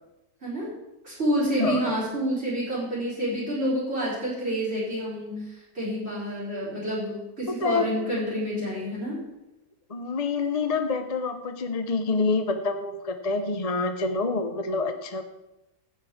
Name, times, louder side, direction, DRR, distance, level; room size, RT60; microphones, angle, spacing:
voice 1, 0.4-0.7 1.0-9.2, equal, 40° right, -6 dB, 4.3 m, -28 dB
voice 2, 1.6-1.9 7.6-7.9 9.9-15.2, left 4 dB, 35° left, 7 dB, 0.7 m, -27 dB
13.5 x 5.7 x 8.5 m, 0.95 s
omnidirectional pair, 1.7 m